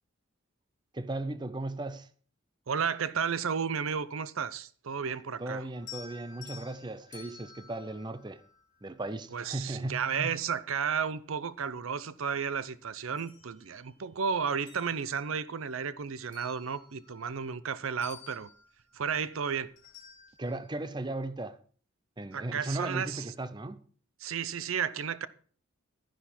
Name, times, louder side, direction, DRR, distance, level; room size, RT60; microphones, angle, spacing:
voice 1, 0.9-2.1 5.4-8.4 8.8-10.3 20.4-21.6 22.2-23.8, right 2 dB, 20° right, 0.5 m, -36 dB
voice 2, 2.7-5.6 9.3-18.5 18.9-19.7 22.3-23.2 24.2-25.3, right 6 dB, 80° right, 0.6 m, -33 dB
sound 1, 5.7-9.1 10.7-10.8 11.3-12.6 12.9-14.2 14.5-17.7 18.0-20.7, left 7 dB, 35° left, 3.7 m, -53 dB
11.5 x 10.0 x 4.3 m
head